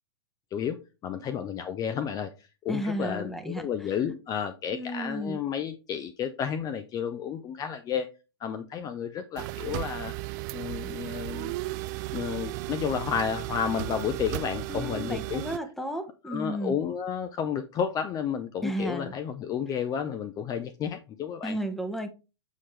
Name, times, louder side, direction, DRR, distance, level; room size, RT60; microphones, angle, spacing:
voice 1, 1.0-8.1 8.4-10.1 10.5-11.5 12.1-15.4 16.3-21.6, left 8 dB, 25° left, 9 dB, 0.6 m, -31 dB
voice 2, 2.7-3.7 4.7-5.4 14.7-16.8 18.6-19.1 21.4-22.1, right 1 dB, ahead, 8 dB, 0.9 m, -33 dB
sound 1, 9.4-15.6, right 20 dB, 45° right, 0.4 m, -35 dB
7.1 x 4.2 x 3.2 m, 0.29 s
hypercardioid pair, 110°, 14 cm